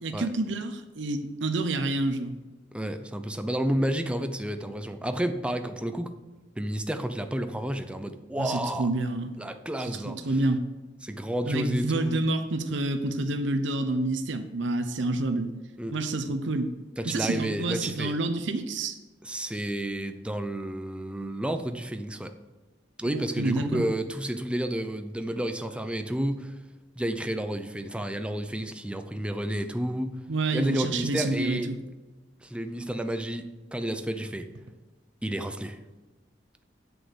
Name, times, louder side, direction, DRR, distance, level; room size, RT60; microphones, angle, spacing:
voice 1, 0.0-2.3 8.4-9.3 9.8-10.6 11.4-15.5 15.9-16.7 17.0-19.0 23.0-23.9 30.3-31.8, right 2 dB, 75° right, 7 dB, 0.8 m, -28 dB
voice 2, 2.7-6.1 6.6-8.9 9.4-10.2 11.0-12.2 15.8-16.0 17.0-18.1 19.2-22.3 23.0-26.5 27.0-30.2 30.5-31.7 32.4-34.5 35.2-35.8, right 1 dB, 5° right, 8 dB, 0.6 m, -31 dB
8.1 x 6.4 x 7.9 m, 1.2 s
head